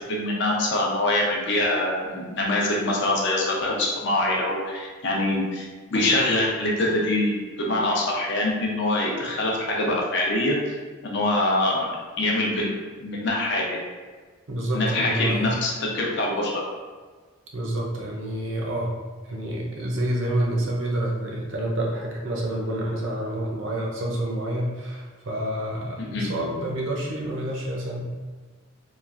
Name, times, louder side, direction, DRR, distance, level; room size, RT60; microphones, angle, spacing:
voice 1, 0.1-10.6 11.0-11.9 12.2-12.7 13.0-13.9 14.7-16.6 26.0-26.3, left 1 dB, 55° left, -2 dB, 0.6 m, -24 dB
voice 2, 14.5-15.6 17.5-18.9 19.3-28.1, right 1 dB, 65° right, -2 dB, 0.6 m, -28 dB
3.1 x 2.4 x 2.4 m, 1.4 s
head